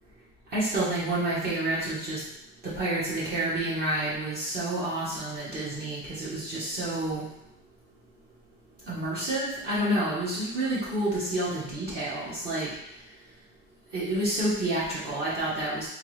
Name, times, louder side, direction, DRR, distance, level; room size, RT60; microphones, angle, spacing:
voice 1, 0.5-2.2 2.6-7.3 8.9-12.7 13.9-15.9, right 1 dB, 35° right, -8 dB, 1.3 m, -29 dB
3.8 x 3.6 x 3.2 m, 0.81 s
cardioid pair, 155°, 29 cm